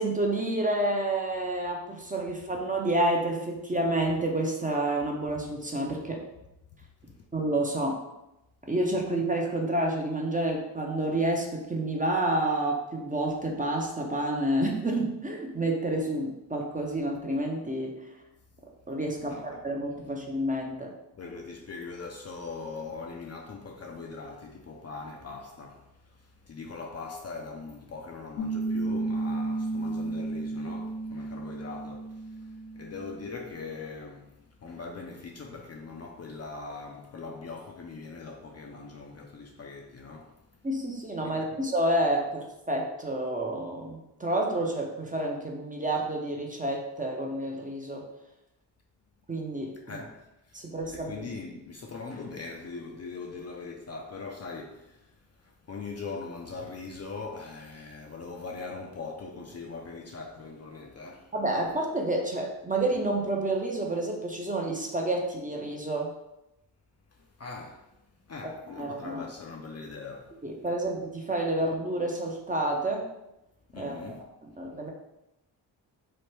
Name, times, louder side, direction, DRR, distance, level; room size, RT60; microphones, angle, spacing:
voice 1, 0.0-6.2 7.3-8.0 8.7-17.9 18.9-20.9 40.6-48.1 49.3-49.7 50.5-51.3 61.3-66.1 68.4-68.5 68.8-69.2 70.4-73.1 73.8-73.9 74.6-74.9, right 1 dB, 20° right, 0.6 m, -29 dB
voice 2, 19.2-19.6 21.2-40.6 41.2-41.4 49.8-61.3 67.1-68.0 68.2-70.4 73.7-74.2, left 4 dB, 35° left, 0.5 m, -41 dB
Piano, 28.4-33.5, right 2 dB, 85° left, 0.7 m, -33 dB
3.0 x 2.1 x 3.2 m
supercardioid pair, 50°, 46 cm